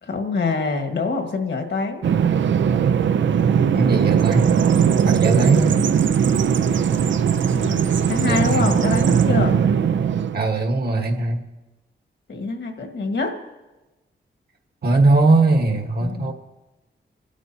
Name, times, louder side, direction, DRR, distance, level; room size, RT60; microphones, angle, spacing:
voice 1, 0.0-2.1 6.4-7.0 7.3-9.6 12.3-13.3 16.0-16.3, left 3 dB, 70° left, 5 dB, 1.8 m, -26 dB
Bird vocalization bird call bird song, 2.0-10.4, right 7 dB, 85° right, 0.6 m, -19 dB
voice 2, 3.7-4.5 5.0-5.8 8.2-8.7 10.3-11.4 14.8-16.3, right 2 dB, 55° right, 4 dB, 1.4 m, -20 dB
25.5 x 12.5 x 2.8 m, 1.1 s
wide cardioid pair, 120°, 19 cm